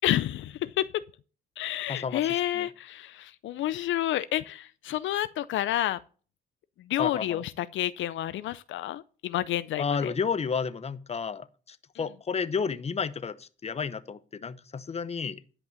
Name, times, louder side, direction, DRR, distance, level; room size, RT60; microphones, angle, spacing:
voice 1, 0.0-0.9 1.6-6.0 6.9-10.1, left 13 dB, 75° left, 0.5 m, -29 dB
voice 2, 1.9-2.7 7.0-7.4 9.8-15.4, left 6 dB, 30° left, 0.8 m, -32 dB
11.0 x 5.4 x 7.0 m
cardioid pair, 90°, 20 cm